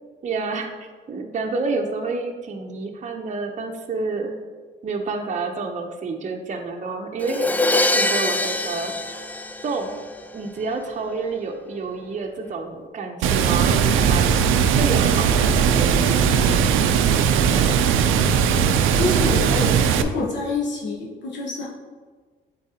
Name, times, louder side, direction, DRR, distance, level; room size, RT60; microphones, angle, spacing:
voice 1, 0.2-0.7 1.1-4.4 4.8-7.5 7.9-9.3 9.6-9.9 10.3-14.4 14.6-16.7 17.2-17.8, right 4 dB, 40° right, 3 dB, 0.7 m, -29 dB
Crash cymbal, 7.2-10.2, left 2 dB, 10° left, 0.4 m, -23 dB
Water, 13.2-20.0, right 7 dB, 90° right, 0.4 m, -18 dB
voice 2, 19.0-19.7 19.9-21.7, left 3 dB, 65° left, -3 dB, 1.0 m, -26 dB
8.4 x 4.0 x 2.8 m, 1.5 s
cardioid pair, 90°, 20 cm